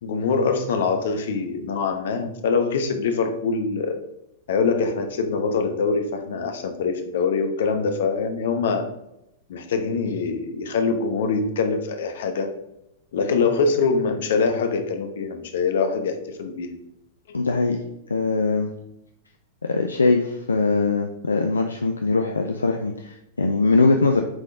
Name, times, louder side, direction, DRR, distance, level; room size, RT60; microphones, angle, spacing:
voice 1, 0.0-4.0 4.5-8.8 9.5-12.5 13.1-16.7, left 4 dB, 60° left, 6 dB, 0.9 m, -24 dB
voice 2, 17.3-17.8 18.1-18.7 19.6-24.2, left 3 dB, 80° left, 5 dB, 0.5 m, -21 dB
8.1 x 3.8 x 3.7 m, 0.83 s
figure-of-eight pair, 95°, 0 cm